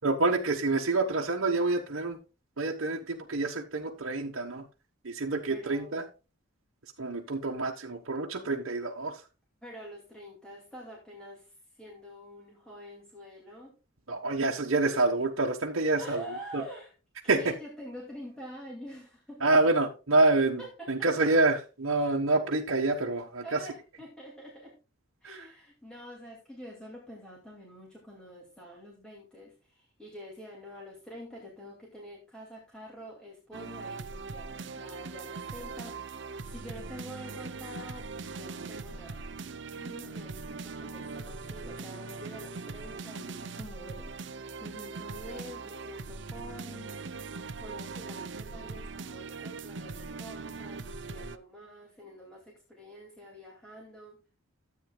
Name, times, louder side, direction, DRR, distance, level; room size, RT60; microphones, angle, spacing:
voice 1, 0.0-2.2 2.6-4.7 5.0-6.1 7.0-9.2 14.1-16.2 16.5-16.6 17.3-17.4 19.4-20.6 20.9-23.6 25.2-25.4, right 2 dB, 75° right, -1 dB, 1.2 m, -27 dB
voice 2, 5.5-5.9 9.6-13.7 16.0-16.9 17.2-19.4 20.6-21.3 23.4-24.8 25.2-39.4 39.8-44.1 44.6-46.9 47.6-54.2, equal, 5° left, -3 dB, 2.4 m, -46 dB
sound 1, 33.5-51.4, right 4 dB, 60° right, 0.6 m, -41 dB
13.5 x 8.4 x 2.3 m, 0.31 s
head